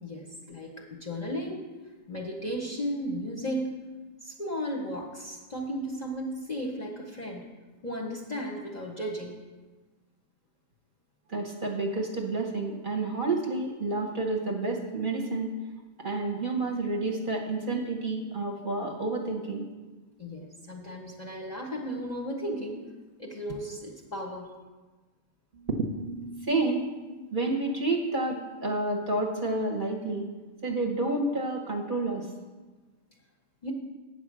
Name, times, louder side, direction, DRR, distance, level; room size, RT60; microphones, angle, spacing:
voice 1, 0.0-1.6 2.1-3.7 4.2-7.4 7.8-9.3 20.2-22.9 23.2-24.5 33.6-33.7, equal, 35° left, 0 dB, 0.8 m, -35 dB
voice 2, 11.3-15.5 16.0-19.7 25.5-26.9 27.3-30.3 30.6-32.3, right 2 dB, 40° right, 0 dB, 1.0 m, -30 dB
8.8 x 5.0 x 7.4 m, 1.3 s
omnidirectional pair, 1.5 m